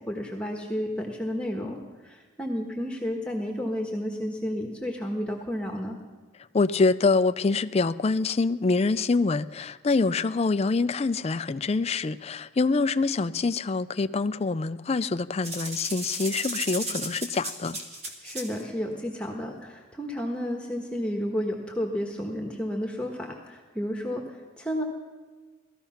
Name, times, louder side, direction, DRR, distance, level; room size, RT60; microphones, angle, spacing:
voice 1, 0.0-1.8 2.0-6.0 18.2-24.8, equal, 5° left, 1 dB, 1.3 m, -31 dB
voice 2, 6.5-17.8, left 3 dB, 30° left, 12 dB, 0.4 m, -25 dB
sound 1, 15.4-18.6, right 1 dB, 35° right, 2.4 m, -34 dB
18.0 x 13.5 x 5.7 m, 1.3 s
head